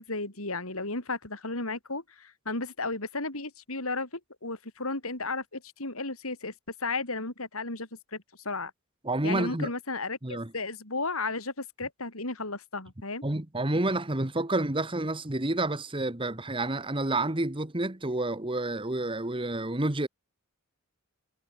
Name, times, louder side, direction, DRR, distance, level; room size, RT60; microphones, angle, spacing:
voice 1, 0.0-4.1 4.4-6.5 6.8-8.7 9.2-13.2, left 3 dB, 70° left, 5.2 m, -34 dB
voice 2, 9.0-9.7 10.2-10.5 13.2-20.1, right 2 dB, 25° right, 1.5 m, -29 dB
head